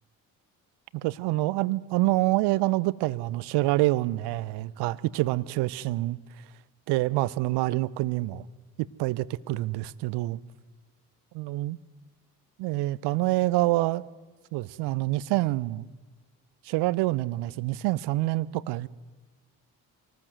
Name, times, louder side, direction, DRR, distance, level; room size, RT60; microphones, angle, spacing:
voice 1, 0.9-6.2 6.9-8.5 9.0-10.4 11.3-11.8 12.6-14.0 14.5-15.9 16.6-18.9, right 18 dB, 55° right, 0.9 m, -26 dB
26.0 x 19.0 x 7.8 m
figure-of-eight pair, 45°, 48 cm